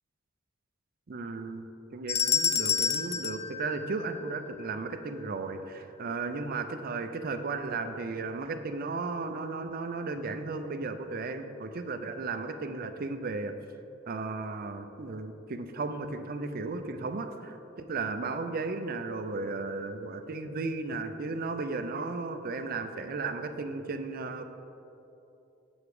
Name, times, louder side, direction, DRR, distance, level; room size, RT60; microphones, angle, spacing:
voice 1, 1.1-1.7 1.9-13.5 14.1-24.4, right 3 dB, 45° right, 7 dB, 0.5 m, -35 dB
sound 1, 2.1-4.5, left 7 dB, 30° left, 0.4 m, -29 dB
7.1 x 6.9 x 4.8 m, 2.9 s
head